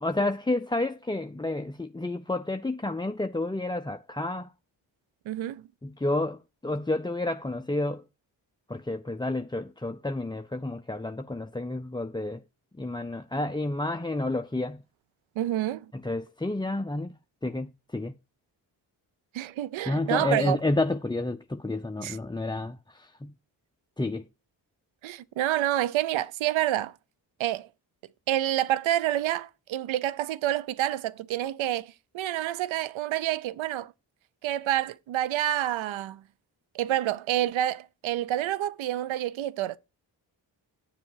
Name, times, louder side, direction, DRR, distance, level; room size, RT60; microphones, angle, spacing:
voice 1, 0.0-4.5 5.8-8.0 8.7-12.4 12.8-14.8 16.0-17.1 17.4-18.1 19.9-23.3 24.0-24.2, left 2 dB, 10° left, 0.6 m, -30 dB
voice 2, 5.3-5.6 15.4-15.9 19.3-20.6 22.0-22.2 25.0-26.9 27.4-27.7 28.3-33.9 34.4-36.2 36.7-39.8, right 13 dB, 90° right, 0.7 m, -28 dB
9.6 x 7.4 x 4.6 m
cardioid pair, 50°, 45 cm